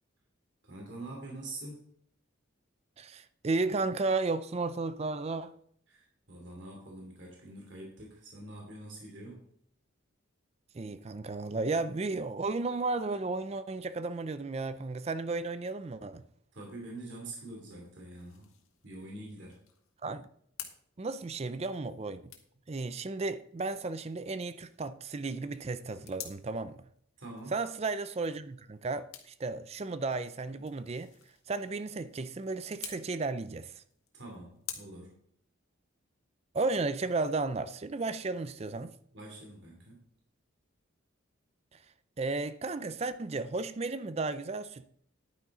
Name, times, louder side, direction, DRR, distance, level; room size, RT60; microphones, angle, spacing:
voice 1, 0.6-2.0 5.9-9.4 16.5-18.5 18.8-19.7 27.2-27.5 34.1-35.2 39.1-40.0, right 2 dB, 60° right, 2.7 m, -45 dB
voice 2, 3.0-5.5 10.7-16.2 20.0-20.3 21.0-22.2 22.7-26.8 27.5-31.1 31.5-33.8 36.5-38.9 41.7-41.8 42.2-44.9, right 3 dB, 30° right, 0.4 m, -34 dB
sound 1, 16.7-34.7, left 10 dB, 90° left, 1.7 m, -52 dB
11.0 x 9.5 x 3.8 m
head